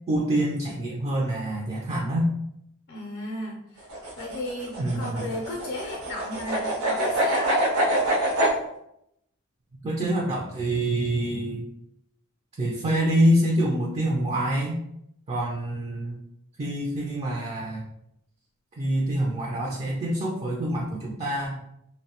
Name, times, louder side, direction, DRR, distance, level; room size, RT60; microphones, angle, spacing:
voice 1, 0.1-2.3 4.8-5.3 9.8-11.7 12.6-14.8 15.3-16.2 16.6-17.9 18.8-21.6, right 1 dB, 25° right, -2 dB, 0.3 m, -26 dB
voice 2, 2.9-3.9 4.2-7.6, left 1 dB, 50° left, -2 dB, 0.5 m, -34 dB
sound 1, 3.8-8.6, right 1 dB, 75° right, 0.6 m, -25 dB
2.6 x 2.0 x 2.8 m, 0.78 s
head